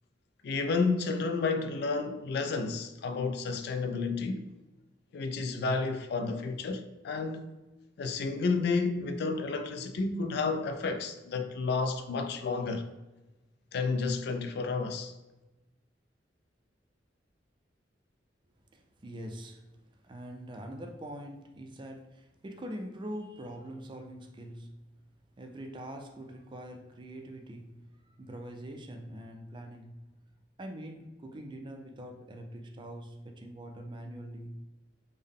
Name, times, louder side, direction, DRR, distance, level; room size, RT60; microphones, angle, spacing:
voice 1, 0.4-4.4 5.1-7.6 8.0-12.9 13.7-15.1, left 4 dB, 65° left, 0.3 m, -31 dB
voice 2, 18.7-24.8 25.3-30.1 30.6-34.6, right 1 dB, 25° right, 0.4 m, -44 dB
3.6 x 2.1 x 3.6 m
head